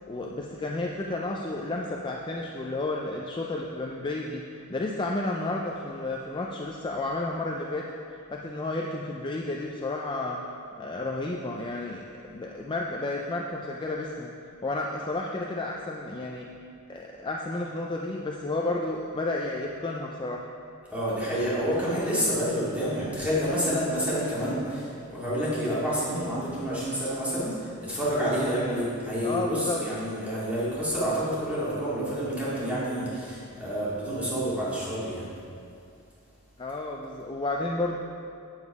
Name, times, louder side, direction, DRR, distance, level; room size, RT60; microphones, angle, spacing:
voice 1, 0.1-7.9 8.3-10.4 10.8-12.0 12.3-14.3 14.6-16.5 16.9-20.5 29.2-29.8 36.6-38.0, left 2 dB, 20° left, -1 dB, 0.4 m, -31 dB
voice 2, 20.9-35.3, equal, 5° right, -9 dB, 2.3 m, -28 dB
8.1 x 7.2 x 4.8 m, 2.5 s
head